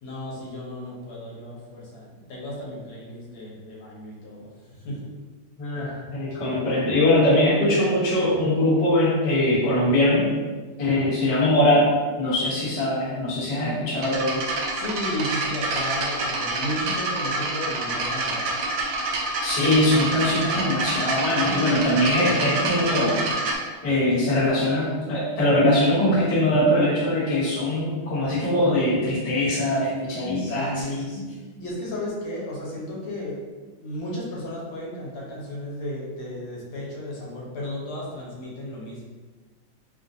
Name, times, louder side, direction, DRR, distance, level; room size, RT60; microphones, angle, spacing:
voice 1, 0.0-5.1 10.9-11.1 14.7-18.4 30.4-31.2 31.6-33.4 33.8-39.0, left 1 dB, 80° left, -5 dB, 1.7 m, -34 dB
voice 2, 5.6-10.3 10.8-11.9 12.2-14.4 19.4-23.2 23.8-31.3, left 1 dB, 40° left, -8 dB, 0.5 m, -22 dB
sound 1, 14.0-23.6, right 2 dB, 90° right, 0.8 m, -27 dB
3.5 x 2.5 x 2.6 m, 1.4 s
omnidirectional pair, 2.3 m